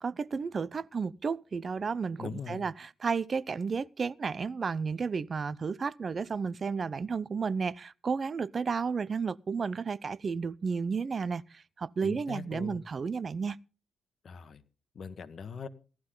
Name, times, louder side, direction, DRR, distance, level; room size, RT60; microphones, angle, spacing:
voice 1, 0.0-13.6, right 5 dB, 45° right, 0.6 m, -32 dB
voice 2, 2.2-2.6 12.0-12.8 14.2-14.6 14.9-15.7, left 6 dB, 55° left, 1.4 m, -41 dB
17.5 x 12.0 x 3.8 m
cardioid pair, 85°, 0 cm